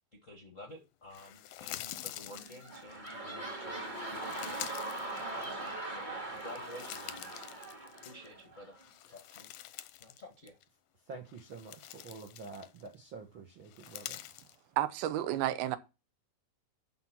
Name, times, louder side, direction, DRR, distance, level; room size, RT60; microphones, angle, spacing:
voice 1, 0.2-3.8 4.1-7.5 8.0-8.7 9.1-9.5 10.0-10.6, left 1 dB, 55° left, 0.8 m, -51 dB
sound 1, 1.1-3.1 3.8-5.9 6.2-8.4 8.8-10.2 10.5-10.6 11.3-12.9 13.6-14.6, left 14 dB, 80° left, 1.9 m, -46 dB
sound 2, 2.3-8.8 9.4-9.5, right 2 dB, 20° right, 1.3 m, -41 dB
voice 2, 11.1-14.2, right 4 dB, 70° right, 1.2 m, -47 dB
voice 3, 14.8-15.8, right 13 dB, 85° right, 2.7 m, -31 dB
12.0 x 4.4 x 5.9 m
omnidirectional pair, 4.3 m